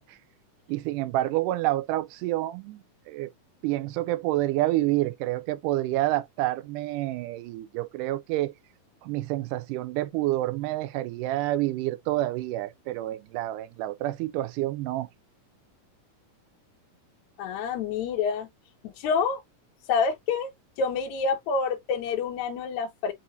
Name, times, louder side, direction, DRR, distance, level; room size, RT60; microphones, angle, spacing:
voice 1, 0.7-3.3 3.6-8.5 9.0-15.1, right 16 dB, 80° right, 2.0 m, -28 dB
voice 2, 17.4-18.5 18.8-19.4 19.9-20.5 20.8-23.1, left 5 dB, 75° left, 1.8 m, -27 dB
5.6 x 2.9 x 2.6 m
omnidirectional pair, 3.8 m